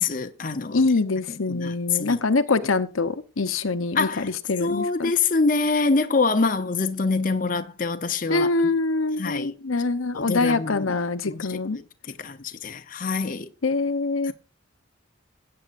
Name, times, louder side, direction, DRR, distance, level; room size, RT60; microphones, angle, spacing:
voice 1, 0.0-0.8 1.3-2.2 3.9-4.3 4.6-8.7 9.2-9.5 10.1-11.0 11.2-11.8 12.2-13.5 14.3-14.4, left 4 dB, 40° left, 0.8 m, -25 dB
voice 2, 0.7-5.1 8.3-11.8 13.6-14.3, left 3 dB, 90° left, 0.9 m, -24 dB
17.0 x 8.6 x 2.6 m
head